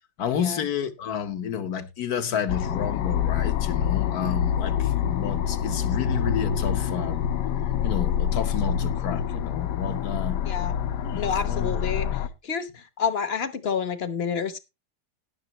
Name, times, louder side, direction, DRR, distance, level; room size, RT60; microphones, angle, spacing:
voice 1, 0.2-7.3 7.8-10.4 11.0-11.8, left 8 dB, 65° left, 1.5 m, -30 dB
sound 1, 2.5-12.3, left 9 dB, 85° left, 1.4 m, -26 dB
voice 2, 11.1-12.1 12.4-14.6, left 6 dB, 45° left, 1.1 m, -28 dB
19.5 x 6.6 x 3.0 m
omnidirectional pair, 1.8 m